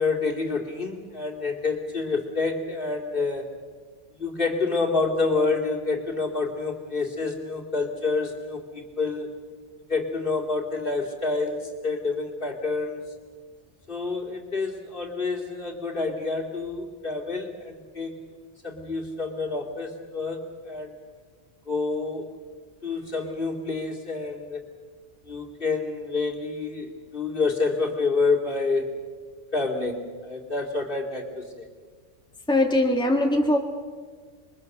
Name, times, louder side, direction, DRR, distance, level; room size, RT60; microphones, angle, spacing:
voice 1, 0.0-3.5 4.2-9.3 9.9-13.0 13.9-18.2 18.6-20.9 21.7-22.3 22.8-24.6 25.2-28.9 29.5-31.7, left 3 dB, 45° left, 1 dB, 2.8 m, -28 dB
voice 2, 32.5-33.6, left 1 dB, 5° left, 1 dB, 1.9 m, -21 dB
27.0 x 22.5 x 6.7 m, 1.5 s
omnidirectional pair, 1.2 m